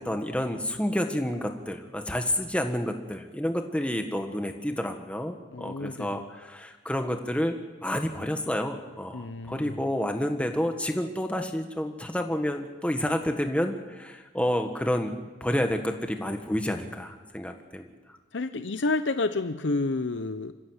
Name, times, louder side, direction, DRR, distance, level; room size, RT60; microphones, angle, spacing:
voice 1, 0.0-18.2, equal, 5° left, 5 dB, 1.5 m, -29 dB
voice 2, 5.5-6.2 9.1-9.9 18.3-20.5, left 3 dB, 85° left, 10 dB, 0.8 m, -30 dB
27.5 x 15.5 x 8.1 m, 1.3 s
head